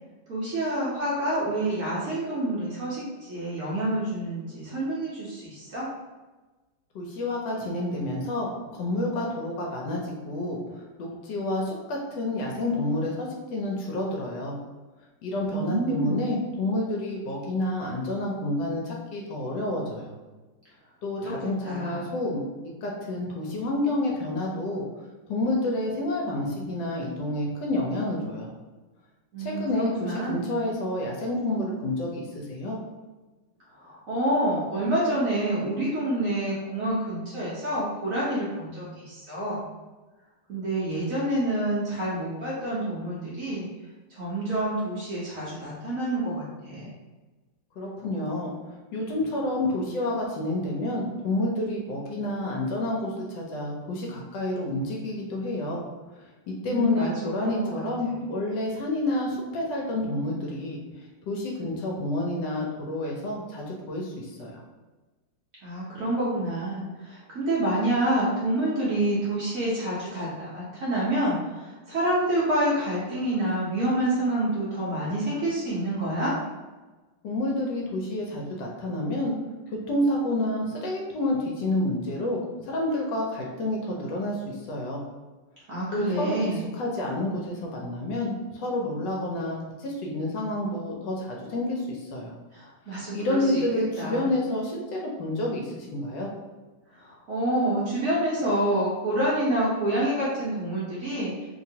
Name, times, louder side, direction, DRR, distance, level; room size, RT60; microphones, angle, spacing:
voice 1, 0.3-5.9 15.4-16.4 21.2-21.4 21.6-22.1 29.3-30.4 33.8-39.6 40.5-43.7 44.1-46.9 56.6-57.8 65.6-76.3 85.7-86.7 92.5-93.6 94.0-94.3 96.9-101.3, right 1 dB, 65° right, -8 dB, 0.8 m, -28 dB
voice 2, 6.9-14.6 15.2-20.1 21.0-22.4 22.8-24.8 25.3-28.5 29.4-32.8 47.8-55.9 56.5-60.8 61.3-64.6 77.2-79.4 79.7-85.0 85.9-92.3 93.1-96.3, left 1 dB, 70° left, -1 dB, 1.1 m, -29 dB
2.9 x 2.9 x 2.7 m, 1.2 s
omnidirectional pair, 2.3 m